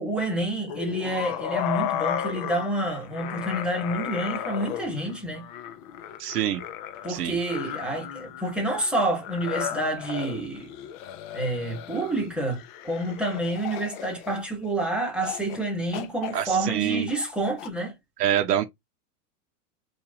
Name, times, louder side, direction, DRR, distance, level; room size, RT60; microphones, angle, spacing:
voice 1, 0.0-5.5 7.0-10.7 11.3-17.9, right 1 dB, ahead, 1.1 m, -28 dB
sound 1, 0.7-14.7 15.2-15.6 15.9-17.7, left 10 dB, 35° left, 0.4 m, -35 dB
voice 2, 6.2-6.6 7.1-7.4 16.3-17.1 18.2-18.6, right 11 dB, 90° right, 0.8 m, -25 dB
3.0 x 2.6 x 3.9 m
hypercardioid pair, 130°, 46 cm